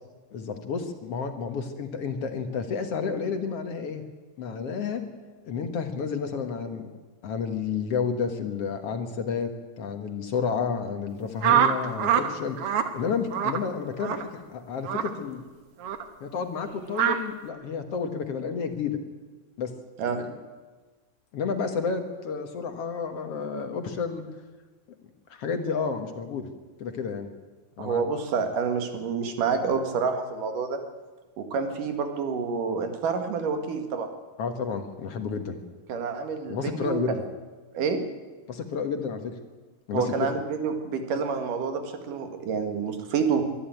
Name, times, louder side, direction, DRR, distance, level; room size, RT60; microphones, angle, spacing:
voice 1, 0.3-4.0 4.4-5.0 5.5-6.9 7.2-9.5 9.8-15.4 16.2-19.0 19.6-19.7 20.2-20.3 21.3-24.2 25.3-26.5 26.8-27.3 27.8-28.0 34.4-35.6 36.5-37.2 38.5-39.3 39.9-40.3, left 5 dB, 55° left, 6 dB, 2.1 m, -31 dB
sound 1, 11.4-12.3 12.6-12.9 13.3-13.6 14.0-14.2 14.8-15.1 15.8-16.0 16.9-17.2, right 9 dB, 60° right, 1.8 m, -23 dB
voice 2, 27.8-30.8 31.4-34.1 35.9-37.2 37.7-38.0 39.9-43.4, right 5 dB, 85° right, 6 dB, 3.4 m, -28 dB
23.5 x 12.5 x 9.2 m, 1.3 s
omnidirectional pair, 3.6 m